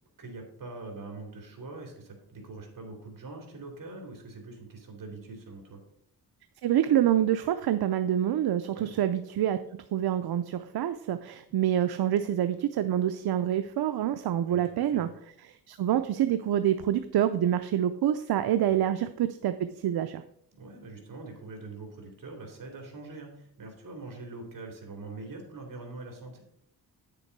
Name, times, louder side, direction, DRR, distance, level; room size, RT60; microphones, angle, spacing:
voice 1, 0.2-5.8 8.7-8.9 14.5-15.0 18.7-18.8 20.5-26.4, right 3 dB, 60° right, 2 dB, 2.9 m, -43 dB
voice 2, 6.6-15.1 15.4-19.5 19.8-20.2, right 11 dB, 75° right, 10 dB, 0.6 m, -26 dB
9.1 x 6.9 x 4.6 m, 0.70 s
wide cardioid pair, 105°, 38 cm